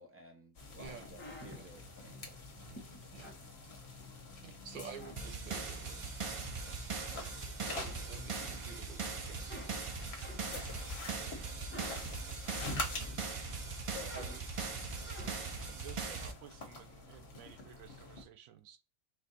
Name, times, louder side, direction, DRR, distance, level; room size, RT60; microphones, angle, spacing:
voice 1, 0.0-2.3 10.5-10.7 13.8-14.4, left 1 dB, 15° right, 0.7 m, -51 dB
sound 1, 0.5-18.2, left 2 dB, 55° left, 1.2 m, -47 dB
sound 2, 0.8-4.3 4.7-5.8 6.3-7.3 7.6-8.8 9.2-13.2 13.6-15.6, left 1 dB, 10° left, 1.0 m, -52 dB
voice 2, 0.8-1.2 1.5-2.3 2.6-2.8 3.1-3.3 4.4-6.7 7.5-9.8, right 5 dB, 45° right, 1.0 m, -52 dB
sound 3, 5.2-16.3, right 4 dB, 60° right, 0.3 m, -40 dB
voice 3, 15.6-18.8, right 10 dB, 85° right, 1.0 m, -54 dB
4.1 x 2.5 x 3.9 m
omnidirectional pair, 1.4 m